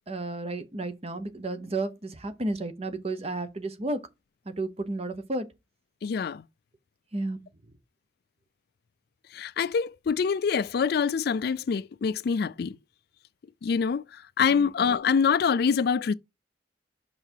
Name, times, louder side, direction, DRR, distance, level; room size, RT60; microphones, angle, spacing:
voice 1, 0.1-4.0 4.5-5.5 7.1-7.4 14.5-14.7, right 2 dB, 35° right, 0.9 m, -32 dB
voice 2, 6.0-6.4 9.3-12.8 13.6-14.0 14.4-16.1, left 6 dB, 60° left, 0.4 m, -25 dB
5.7 x 5.6 x 4.5 m
head